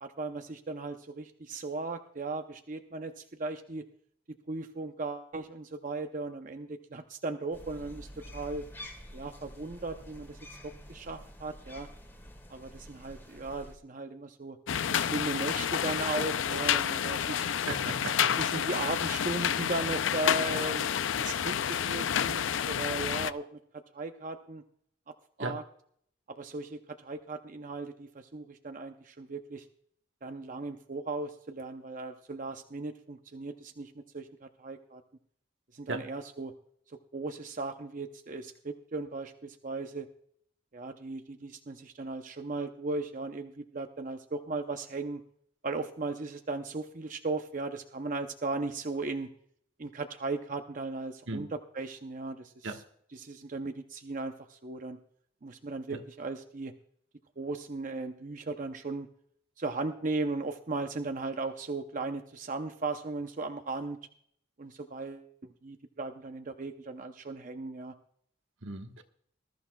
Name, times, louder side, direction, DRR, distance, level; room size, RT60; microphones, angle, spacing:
voice 1, 0.0-3.8 4.5-8.7 9.1-11.9 12.5-14.6 14.9-17.5 18.4-20.9 21.2-23.5 23.9-24.6 25.4-25.6 26.3-29.7 30.2-35.0 35.7-36.5 37.1-40.1 40.7-45.2 45.6-49.3 49.8-52.8 53.1-55.0 55.4-56.7 57.4-59.1 59.6-64.0 64.6-67.9, right 3 dB, 40° right, 6 dB, 0.6 m, -37 dB
sound 1, 7.5-13.7, equal, 10° left, 1.8 m, -48 dB
sound 2, 14.7-23.3, left 9 dB, 80° left, 0.4 m, -29 dB
voice 2, 17.7-18.3 25.4-25.6 35.9-36.0 51.3-51.5 52.6-52.8 55.9-56.0 68.6-69.0, right 2 dB, 80° right, 5 dB, 1.3 m, -36 dB
20.5 x 13.5 x 2.3 m, 0.66 s
head